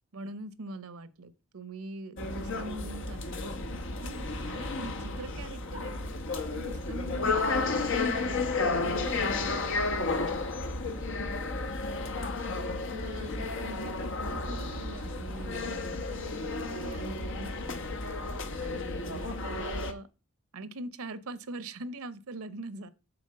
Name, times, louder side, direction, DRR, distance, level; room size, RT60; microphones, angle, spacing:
voice 1, 0.1-3.5 4.0-6.1 6.5-9.5 12.8-17.8 18.2-18.3 18.6-20.1 20.5-22.9, right 2 dB, 90° right, 0.8 m, -43 dB
sound 1, 2.2-19.9, left 3 dB, 60° left, 1.0 m, -32 dB
voice 2, 6.5-7.3 10.2-11.8 18.8-19.1, left 1 dB, 15° left, 2.3 m, -54 dB
7.1 x 4.1 x 6.5 m
head